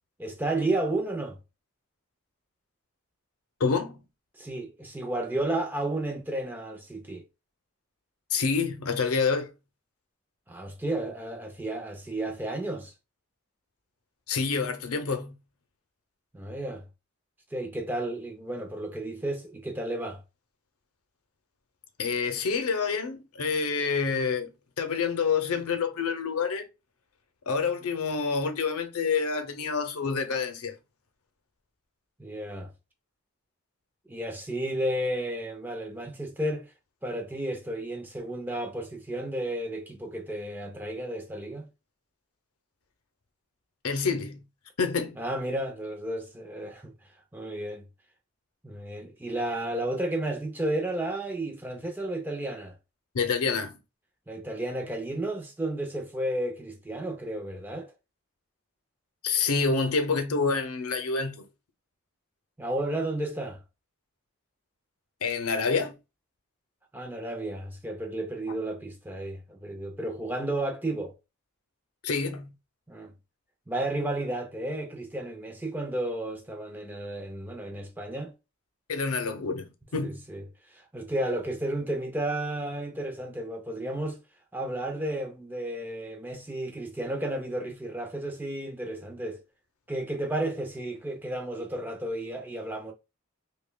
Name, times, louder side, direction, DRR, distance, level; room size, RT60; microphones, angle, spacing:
voice 1, 0.2-1.4 4.3-7.2 10.5-12.9 16.3-16.9 17.5-20.2 32.2-32.7 34.1-36.7 37.0-41.7 45.2-46.9 47.3-47.9 48.6-52.8 54.3-57.9 62.6-63.6 66.9-71.1 72.9-73.1 73.7-78.3 80.0-80.4 80.7-84.2 84.5-89.4 89.9-92.9, right 1 dB, 10° right, 0.5 m, -32 dB
voice 2, 3.6-4.0 8.3-9.5 14.3-15.4 22.0-24.5 24.8-26.7 27.5-30.8 43.8-44.4 44.8-45.2 53.1-53.8 59.2-61.4 65.2-66.0 72.0-72.5 78.9-80.2, left 5 dB, 85° left, 0.7 m, -27 dB
5.2 x 2.2 x 2.2 m
head